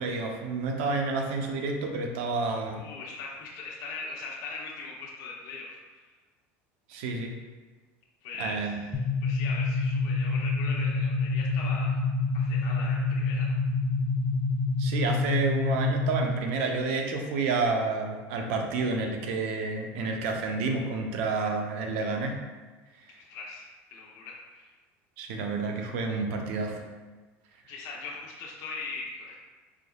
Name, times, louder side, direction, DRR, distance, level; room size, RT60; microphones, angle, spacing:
voice 1, 0.0-2.8 6.9-7.3 8.4-8.8 14.8-22.4 25.2-26.8, right 3 dB, 80° right, 2 dB, 0.6 m, -29 dB
voice 2, 2.7-6.1 8.2-12.0 12.3-13.6 23.2-24.7 27.7-29.4, left 4 dB, 60° left, -3 dB, 0.7 m, -40 dB
sound 1, 8.9-16.5, left 3 dB, 10° left, 0.6 m, -27 dB
4.7 x 3.6 x 2.3 m, 1.3 s
supercardioid pair, 125°, 7 cm